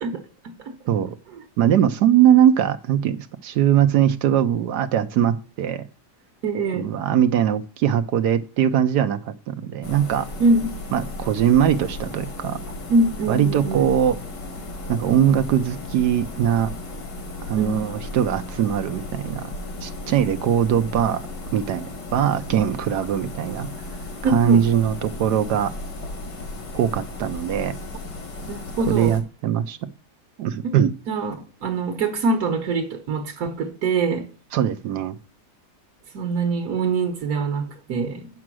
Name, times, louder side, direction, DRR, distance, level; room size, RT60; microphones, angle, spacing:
voice 1, 1.6-5.8 6.7-10.3 10.9-12.6 13.3-14.2 14.9-16.7 17.4-19.5 19.8-21.3 21.5-23.7 24.2-25.7 26.7-27.7 28.9-29.8 30.4-30.9 34.5-35.1, right 10 dB, 75° right, 1.2 m, -21 dB
voice 2, 6.4-6.9 10.4-10.7 12.9-13.9 17.6-17.9 24.2-24.6 28.5-29.2 31.1-34.3 36.1-38.3, right 3 dB, 60° right, 1.6 m, -23 dB
sound 1, 9.8-29.2, left 2 dB, 85° left, 2.6 m, -35 dB
8.5 x 6.1 x 6.1 m
omnidirectional pair, 1.8 m